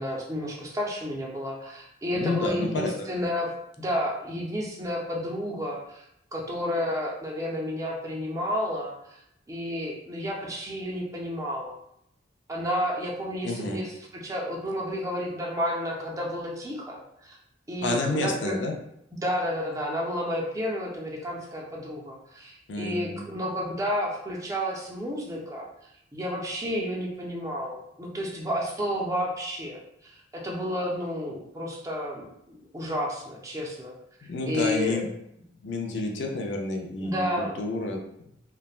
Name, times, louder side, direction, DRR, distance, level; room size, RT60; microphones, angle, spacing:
voice 1, 0.0-3.5 3.8-6.1 6.3-9.2 9.5-11.7 12.5-17.4 17.7-18.6 19.2-25.7 26.1-33.9 34.4-35.0 37.0-37.5, equal, 15° right, -2 dB, 0.4 m, -31 dB
voice 2, 2.1-2.9 13.4-13.8 17.8-18.7 22.7-23.3 34.3-35.1 35.6-38.0, left 2 dB, 65° left, 1 dB, 0.5 m, -29 dB
3.2 x 2.1 x 2.4 m, 0.78 s
head